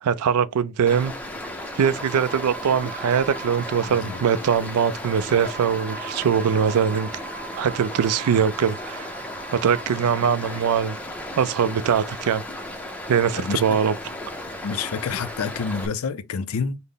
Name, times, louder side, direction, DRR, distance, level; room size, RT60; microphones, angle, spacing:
voice 1, 0.0-1.1 1.7-7.1 7.6-9.1 9.5-11.0 11.4-12.4 13.1-13.9, right 7 dB, 85° right, 0.4 m, -22 dB
Stream, 0.9-15.9, left 1 dB, 5° left, 0.5 m, -35 dB
sound 1, 2.0-10.5, right 8 dB, 20° right, 1.4 m, -41 dB
voice 2, 3.8-4.2 13.4-13.6 14.6-16.8, left 5 dB, 75° left, 0.5 m, -28 dB
5.3 x 2.0 x 3.8 m
head